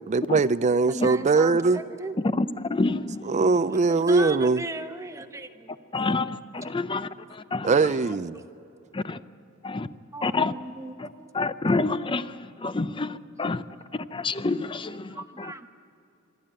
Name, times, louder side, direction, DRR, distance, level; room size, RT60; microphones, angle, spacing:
voice 1, 0.1-1.8 3.2-4.6 7.6-8.4, right 4 dB, 35° right, 0.4 m, -21 dB
voice 2, 0.9-2.2 3.7-5.7 10.1-11.3 13.7-13.8 15.1-15.7, right 2 dB, 15° right, 0.9 m, -36 dB
voice 3, 2.3-3.4 5.9-7.7 8.9-9.2 9.6-9.9 10.2-10.5 11.0-11.1 11.3-13.6 13.9-15.7, left 3 dB, 25° left, 0.5 m, -28 dB
26.0 x 12.0 x 8.8 m
head